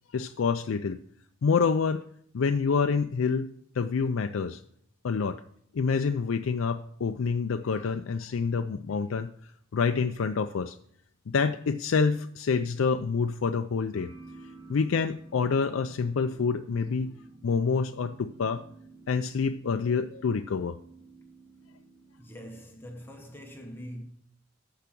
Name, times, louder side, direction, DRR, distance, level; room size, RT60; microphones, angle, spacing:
voice 1, 0.1-1.0 1.4-2.0 2.3-3.5 3.7-4.6 5.0-5.4 5.7-9.3 9.7-10.8 11.3-14.1 14.7-17.1 17.4-18.6 19.1-20.8, left 5 dB, 85° left, 0.4 m, -27 dB
sound 1, 13.9-23.4, right 2 dB, 30° right, 5.0 m, -52 dB
voice 2, 22.2-24.0, equal, 10° left, 1.0 m, -43 dB
13.5 x 4.9 x 6.0 m
head